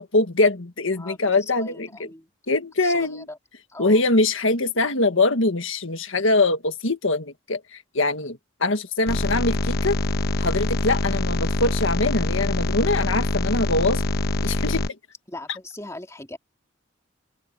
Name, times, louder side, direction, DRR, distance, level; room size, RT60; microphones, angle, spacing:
voice 1, 0.0-2.1 2.5-3.3 3.8-10.0 10.4-14.0 14.4-14.9, left 2 dB, 75° left, 1.8 m, -23 dB
voice 2, 1.0-2.3 2.8-3.4 3.7-4.0 15.3-16.4, left 2 dB, 15° left, 2.6 m, -39 dB
sound 1, 9.1-14.9, left 2 dB, 50° left, 1.2 m, -24 dB
open air
head